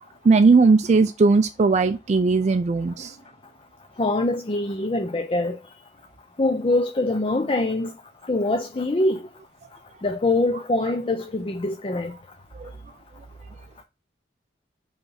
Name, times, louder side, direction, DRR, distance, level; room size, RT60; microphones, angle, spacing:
voice 1, 0.2-3.2 12.5-12.7, right 4 dB, 40° right, 0.4 m, -18 dB
voice 2, 4.0-5.6 6.4-7.9 8.3-9.2 10.0-12.1, left 2 dB, 30° left, 0.6 m, -24 dB
5.3 x 3.3 x 5.5 m
head